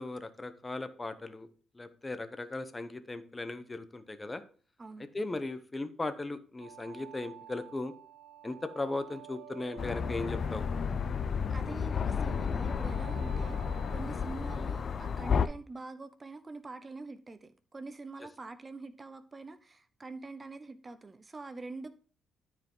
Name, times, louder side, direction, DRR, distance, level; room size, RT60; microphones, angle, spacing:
voice 1, 0.0-1.5 1.7-4.4 5.1-7.9 8.4-10.6, left 2 dB, 20° left, 0.9 m, -37 dB
sound 1, 6.6-14.7, right 10 dB, 90° right, 0.8 m, -52 dB
sound 2, 9.8-15.5, left 6 dB, 50° left, 0.5 m, -32 dB
voice 2, 11.5-13.6 13.9-21.9, right 3 dB, 25° right, 0.7 m, -45 dB
13.0 x 4.8 x 3.8 m
cardioid pair, 90°, 0 cm